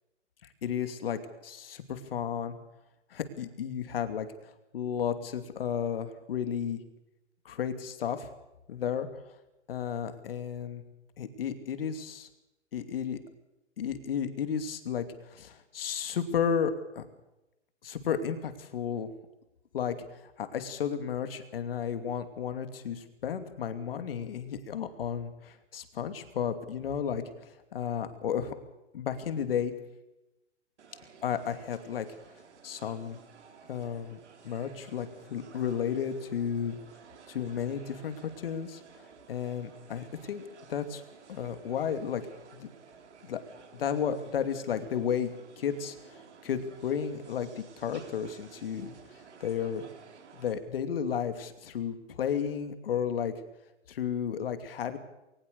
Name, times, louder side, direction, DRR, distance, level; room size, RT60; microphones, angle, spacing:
voice 1, 0.6-2.5 3.1-4.3 4.7-6.8 7.4-8.3 8.7-9.1 9.7-10.8 11.2-12.3 12.7-13.2 13.8-17.0 17.8-19.1 19.7-19.9 20.2-27.2 27.7-28.5 28.9-29.7 31.2-32.0 32.6-33.2 33.7-36.8 37.3-38.8 39.3-40.4 40.7-41.0 41.3-42.2 42.5-42.7 43.2-43.4 43.7-45.3 45.6-45.9 46.4-48.9 49.4-49.8 50.4-53.3 53.9-55.0, left 8 dB, 50° left, 9 dB, 2.7 m, -33 dB
sound 1, 30.8-50.5, right 6 dB, 70° right, 4.1 m, -54 dB
21.5 x 19.5 x 6.9 m, 0.95 s
hypercardioid pair, 165°, 36 cm